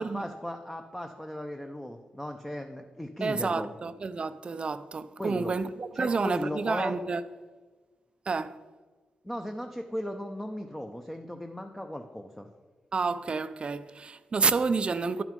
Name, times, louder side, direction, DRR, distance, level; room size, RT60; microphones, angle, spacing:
voice 1, 0.0-3.7 5.2-5.6 5.9-7.0 9.2-12.5, left 1 dB, 10° left, 0.7 m, -36 dB
voice 2, 3.2-7.2 8.3-8.6 12.9-15.2, right 4 dB, 45° right, 0.5 m, -29 dB
11.0 x 6.1 x 5.3 m
cardioid pair, 80°, 3 cm